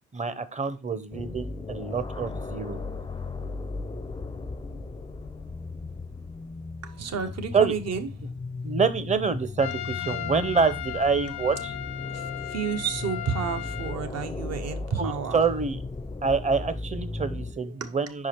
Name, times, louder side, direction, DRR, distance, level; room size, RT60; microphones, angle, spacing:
voice 1, 0.1-2.8 7.5-7.7 8.6-11.7 15.0-15.8 16.2-18.3, right 5 dB, 25° right, 0.7 m, -26 dB
sound 1, 1.1-17.5, left 3 dB, 15° left, 0.5 m, -36 dB
voice 2, 6.8-8.1 12.1-15.4 17.6-18.0, right 6 dB, 60° right, 0.9 m, -31 dB
Trumpet, 9.6-14.0, left 12 dB, 65° left, 0.5 m, -36 dB
5.1 x 4.8 x 4.3 m
cardioid pair, 90°, 30 cm